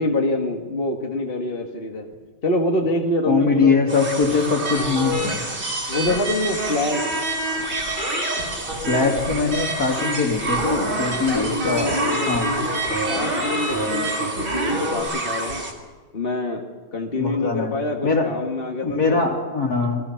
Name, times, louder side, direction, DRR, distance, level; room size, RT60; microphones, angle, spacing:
voice 1, 0.0-2.1 2.4-4.0 5.9-7.3 11.3-12.8 13.1-15.6 16.1-16.6 16.9-19.3, left 1 dB, 30° left, 1 dB, 1.8 m, -25 dB
voice 2, 3.3-5.4 8.9-12.0 12.3-12.5 17.2-17.7 18.0-18.3 18.8-20.0, left 4 dB, 50° left, 2 dB, 3.3 m, -22 dB
sound 1, 3.9-15.7, right 2 dB, 35° right, 2.9 m, -30 dB
sound 2, 4.7-15.0, right 1 dB, 85° right, 4.6 m, -28 dB
28.0 x 21.0 x 5.9 m, 1.4 s
omnidirectional pair, 2.1 m